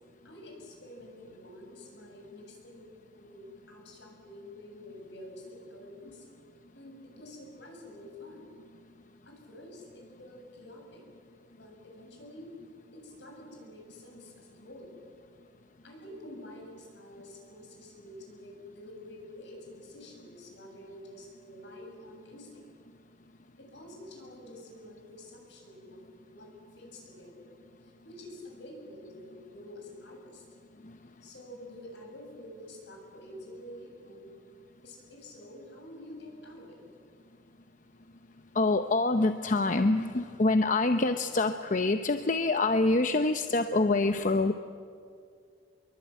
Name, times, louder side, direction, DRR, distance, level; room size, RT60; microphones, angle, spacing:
voice 1, 0.2-6.2 6.7-8.5 9.2-11.0 11.6-12.5 12.9-14.9 15.8-22.6 23.6-26.0 26.3-26.5 26.8-27.5 28.0-30.4 31.2-34.3 34.8-36.8, left 1 dB, 70° left, 1 dB, 7.6 m, -48 dB
voice 2, 38.5-44.5, left 2 dB, 45° left, 8 dB, 0.8 m, -26 dB
24.5 x 22.5 x 9.3 m, 2.2 s
head